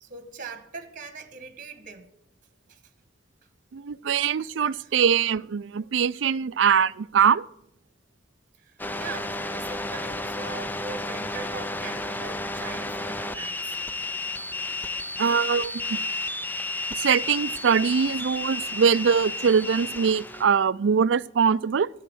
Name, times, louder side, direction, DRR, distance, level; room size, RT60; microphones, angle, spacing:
voice 1, 0.0-2.1 2.7-2.8 4.8-5.0 8.6-13.8, right 4 dB, 45° right, 1.4 m, -41 dB
voice 2, 3.7-7.4 15.2-16.0 17.0-21.9, right 6 dB, 70° right, 0.4 m, -22 dB
sound 1, 8.8-20.4, left 2 dB, 10° left, 0.6 m, -32 dB
12.5 x 9.8 x 7.8 m
head